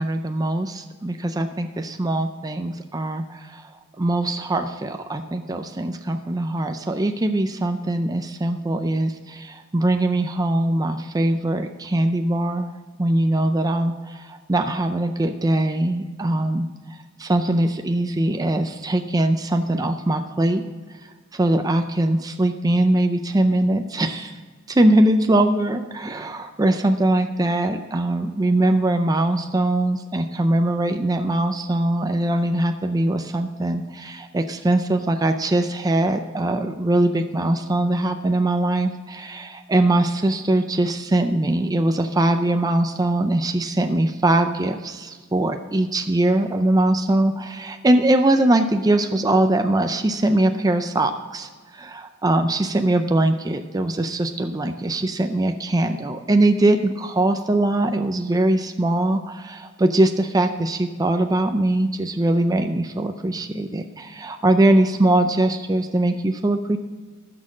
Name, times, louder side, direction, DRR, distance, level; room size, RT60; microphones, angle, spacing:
voice 1, 0.0-3.7 4.0-12.7 13.0-16.7 17.2-20.6 21.3-24.4 24.7-66.8, right 1 dB, 20° right, 7 dB, 0.5 m, -21 dB
15.0 x 6.5 x 6.1 m, 1.5 s
head